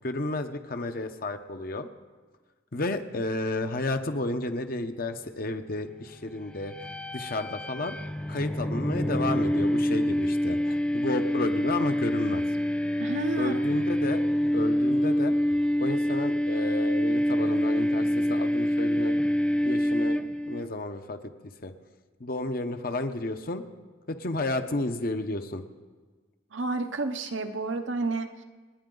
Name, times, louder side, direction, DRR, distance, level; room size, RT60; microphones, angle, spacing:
voice 1, 0.0-1.9 2.7-6.7 7.1-8.0 8.3-12.4 13.4-14.2 14.5-15.3 15.8-19.2 19.6-20.2 20.5-21.7 22.2-23.6 24.1-25.6, left 2 dB, 50° left, 7 dB, 0.9 m, -32 dB
sound 1, 6.6-20.6, equal, 5° left, 0.3 m, -26 dB
voice 2, 13.0-13.6 26.5-28.4, right 3 dB, 70° right, 7 dB, 0.9 m, -30 dB
29.5 x 9.8 x 3.9 m, 1.4 s
head